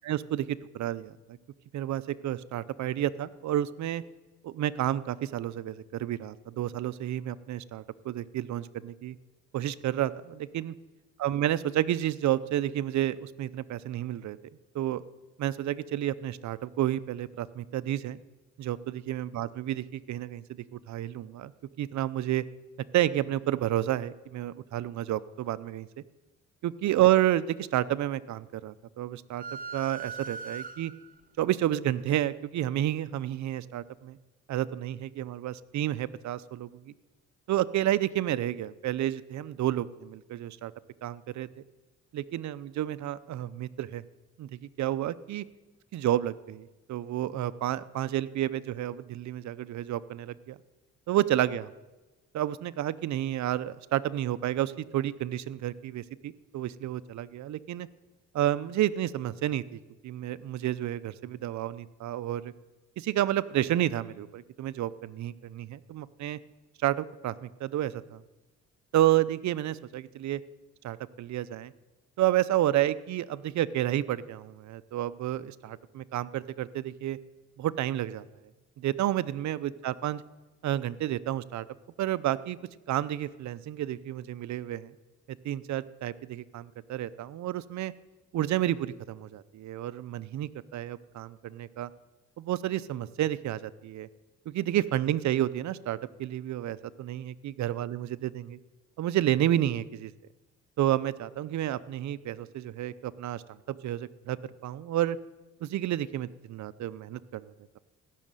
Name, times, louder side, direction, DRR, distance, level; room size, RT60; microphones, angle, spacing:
voice 1, 0.1-1.4 1.7-4.0 4.4-9.2 9.5-10.7 11.2-14.4 14.7-15.0 15.4-18.2 18.6-20.4 20.7-21.5 21.8-22.4 22.9-25.9 26.6-29.4 29.7-30.9 31.4-34.2 34.5-36.9 37.5-40.7 41.0-41.5 42.1-44.0 44.4-45.4 45.9-50.6 51.1-51.7 52.3-57.9 58.3-62.5 63.0-66.4 66.8-68.2 68.9-70.4 70.8-71.7 72.2-77.2 77.6-78.2 78.8-80.2 80.6-81.7 82.0-82.6 82.9-84.9 85.3-87.9 88.3-91.9 92.4-94.1 94.5-98.1 98.3-98.6 99.0-100.1 100.8-103.4 103.7-104.4 104.6-105.2 105.6-107.8, right 13 dB, 65° right, 16 dB, 0.7 m, -30 dB
sound 1, 29.4-31.2, right 5 dB, 30° right, 1.4 m, -40 dB
16.5 x 6.5 x 9.0 m, 1.1 s
cardioid pair, 90°, 30 cm